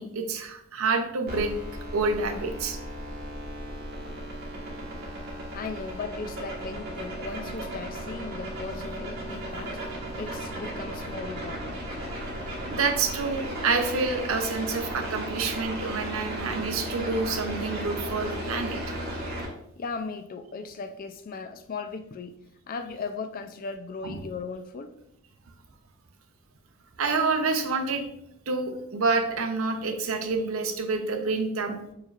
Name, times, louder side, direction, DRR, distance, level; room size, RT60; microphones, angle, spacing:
voice 1, 0.0-1.6 1.9-2.8 12.7-18.8 24.0-24.1 27.0-28.1 28.5-31.9, right 4 dB, 75° right, 0.7 m, -28 dB
sound 1, 1.3-19.4, right 1 dB, 45° right, 1.3 m, -35 dB
voice 2, 5.5-9.8 10.1-11.8 19.8-22.4 22.7-25.0, left 4 dB, 40° left, 0.4 m, -37 dB
6.6 x 3.2 x 2.4 m
head